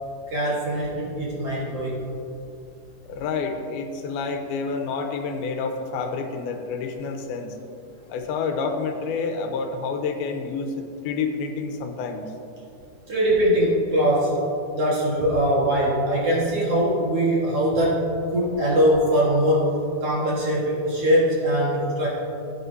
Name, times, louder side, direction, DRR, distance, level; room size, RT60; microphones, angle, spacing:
voice 1, 0.3-2.0 13.1-14.4 14.7-19.8 20.0-22.1, equal, 50° right, -5 dB, 2.2 m, -22 dB
voice 2, 3.1-7.5 8.1-12.3, left 4 dB, 90° left, 5 dB, 2.7 m, -29 dB
16.5 x 8.8 x 2.7 m, 2.7 s
omnidirectional pair, 4.3 m